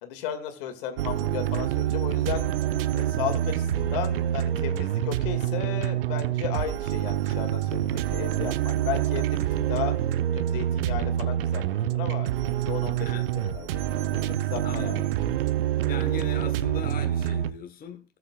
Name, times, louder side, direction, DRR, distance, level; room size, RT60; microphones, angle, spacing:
voice 1, 0.0-2.5 2.9-9.9 10.3-13.1 13.3-13.8 14.1-15.0, left 10 dB, 65° left, 6 dB, 2.3 m, -35 dB
sound 1, 1.0-17.5, right 12 dB, 70° right, 0.8 m, -26 dB
voice 2, 13.0-13.3 14.6-15.1 15.9-18.2, left 7 dB, 30° left, 6 dB, 1.4 m, -39 dB
19.0 x 8.1 x 2.4 m, 0.37 s
figure-of-eight pair, 70°, 30 cm